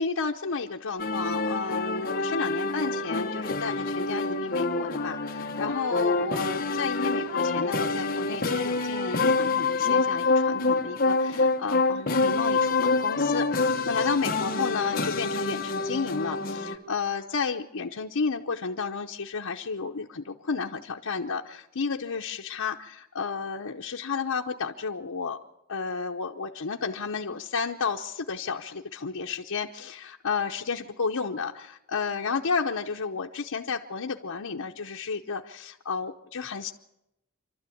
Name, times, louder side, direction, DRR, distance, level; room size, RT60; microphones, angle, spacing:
voice 1, 0.0-25.4 25.7-36.7, left 5 dB, 85° left, 0 dB, 0.9 m, -32 dB
sound 1, 1.0-16.8, left 3 dB, 40° left, 1.2 m, -26 dB
27.0 x 12.5 x 8.5 m, 0.87 s
head